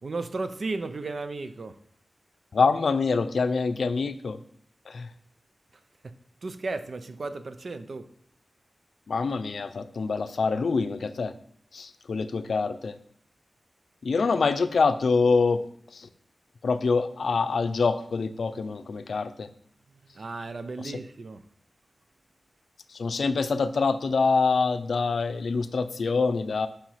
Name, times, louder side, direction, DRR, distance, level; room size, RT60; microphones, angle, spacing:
voice 1, 0.0-1.8 6.4-8.1 20.1-21.4, right 3 dB, 65° right, 10 dB, 0.6 m, -34 dB
voice 2, 2.5-4.4 4.9-5.1 9.1-11.3 11.7-12.9 14.0-15.6 15.9-16.1 16.6-19.5 20.8-20.9 22.9-26.7, left 4 dB, 90° left, 11 dB, 0.5 m, -25 dB
5.9 x 4.9 x 5.6 m, 0.63 s
wide cardioid pair, 70°, 0 cm